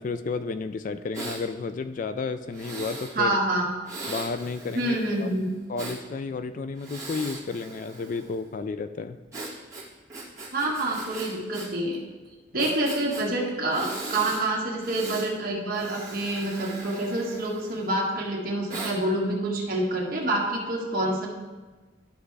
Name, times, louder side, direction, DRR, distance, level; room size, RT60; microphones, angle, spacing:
voice 1, 0.0-3.4 4.1-5.3 5.7-9.2 12.6-12.7, left 4 dB, 45° left, 11 dB, 0.3 m, -32 dB
Breathing, 1.1-1.4 2.5-3.2 3.9-6.0 6.8-8.4 9.3-11.7 11.9-12.0 12.6-13.2 13.7-14.4 14.8-15.3 15.7-17.9 18.7-19.0, right 2 dB, 15° right, 1.8 m, -39 dB
voice 2, 3.1-3.7 4.7-5.5 10.5-12.0 12.5-21.3, right 1 dB, 50° right, -3 dB, 1.6 m, -27 dB
12.0 x 5.6 x 3.3 m, 1.3 s
head